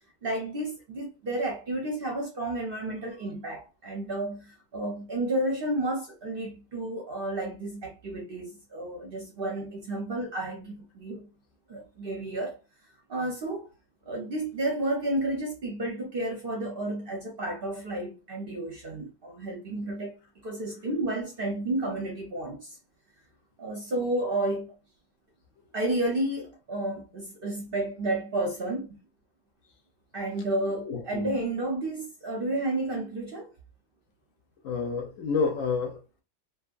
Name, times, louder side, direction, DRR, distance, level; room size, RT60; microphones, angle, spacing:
voice 1, 0.2-11.3 11.7-12.6 13.1-13.7 14.1-20.2 20.4-22.8 23.6-24.7 25.7-28.9 30.1-33.5, right 1 dB, 50° right, 0.7 m, -31 dB
voice 2, 30.8-31.3 34.6-36.2, left 4 dB, 70° left, 0.9 m, -29 dB
2.7 x 2.3 x 2.5 m
omnidirectional pair, 1.5 m